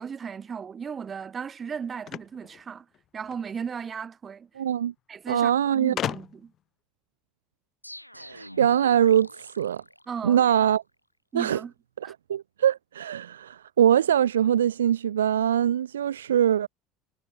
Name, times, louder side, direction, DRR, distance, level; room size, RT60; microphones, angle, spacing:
voice 1, 0.0-2.9 3.1-4.5 5.1-6.5 10.1-10.5 11.3-11.7 12.0-12.1, right 6 dB, 30° right, 4.0 m, -36 dB
sound 1, 2.0-3.5 4.6-4.7 4.9-5.0 6.0-6.6, left 11 dB, 40° left, 5.5 m, -34 dB
voice 2, 4.6-4.9 5.3-5.9 8.2-9.8 10.2-10.8 11.3-11.6 12.0-16.7, right 10 dB, 70° right, 0.3 m, -23 dB
sound 2, 7.8-10.6, equal, 90° left, 1.6 m, -43 dB
figure-of-eight pair, 65°, 0 cm